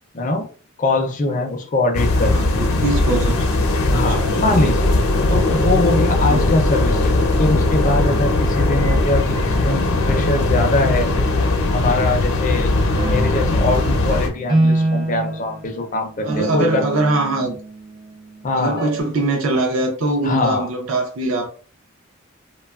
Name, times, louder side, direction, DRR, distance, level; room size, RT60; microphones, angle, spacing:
voice 1, 0.1-0.5 0.8-2.5 3.9-4.9 5.3-11.1 11.7-12.7 13.0-16.8 18.4-18.8 20.2-20.7, left 2 dB, 35° left, 0.4 m, -22 dB
sound 1, 1.9-14.3, left 2 dB, 85° left, 0.6 m, -19 dB
voice 2, 2.3-3.5 3.9-4.8 6.2-6.7 16.2-17.6 18.5-21.5, right 2 dB, 75° right, 0.5 m, -22 dB
sound 2, 12.9-18.0 18.8-19.0, right 2 dB, 25° right, 0.4 m, -25 dB
2.8 x 2.2 x 2.3 m
head